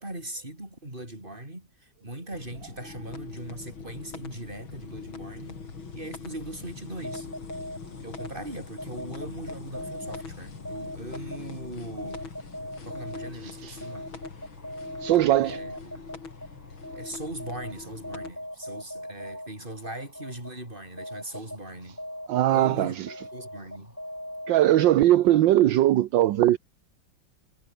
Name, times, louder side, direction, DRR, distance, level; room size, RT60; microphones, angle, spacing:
voice 1, 0.0-5.6 5.9-7.3 8.0-12.2 12.8-14.2 15.4-16.1 16.9-22.0 22.5-23.0 23.3-24.0, right 1 dB, 25° right, 7.2 m, -40 dB
sound 1, 2.3-18.3, left 5 dB, 90° left, 4.2 m, -42 dB
sound 2, 6.9-25.4, equal, 5° left, 6.0 m, -41 dB
voice 2, 13.4-13.8 15.0-15.6 22.3-23.1 24.5-26.6, right 13 dB, 70° right, 1.5 m, -20 dB
omnidirectional pair, 2.2 m